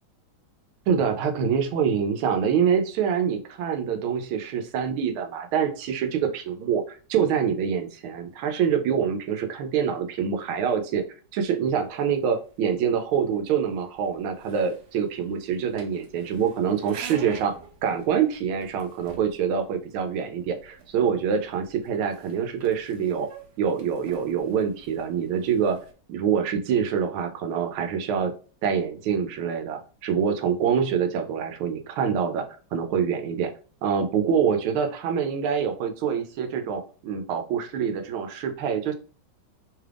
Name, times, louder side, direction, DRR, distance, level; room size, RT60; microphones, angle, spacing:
voice 1, 0.9-11.0 11.3-17.6 17.8-23.3 23.6-25.8 26.1-28.3 28.6-33.5 33.8-38.9, right 7 dB, 85° right, 7 dB, 1.4 m, -25 dB
sound 1, 11.7-25.9, right 6 dB, 70° right, 1.1 m, -48 dB
3.5 x 3.3 x 2.4 m, 0.38 s
omnidirectional pair, 2.2 m